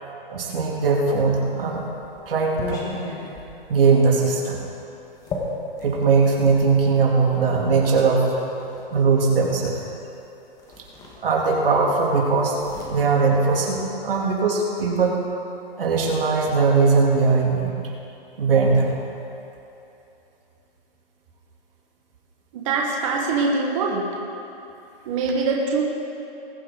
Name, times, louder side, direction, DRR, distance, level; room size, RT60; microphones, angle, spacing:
voice 1, 0.3-1.8 2.3-2.9 3.7-4.6 5.8-8.4 8.9-9.8 11.2-12.6 12.9-15.2 15.8-17.7 18.4-18.9, right 4 dB, 65° right, -2 dB, 3.2 m, -20 dB
sound 1, 1.3-6.6 7.5-8.9 10.1-10.2 10.6-11.7 11.9-14.2, left 2 dB, 10° left, 1.5 m, -37 dB
voice 2, 22.5-24.1 25.0-25.8, right 4 dB, 30° right, -2 dB, 1.6 m, -23 dB
21.0 x 8.4 x 4.0 m, 2.9 s
hypercardioid pair, 155°, 30 cm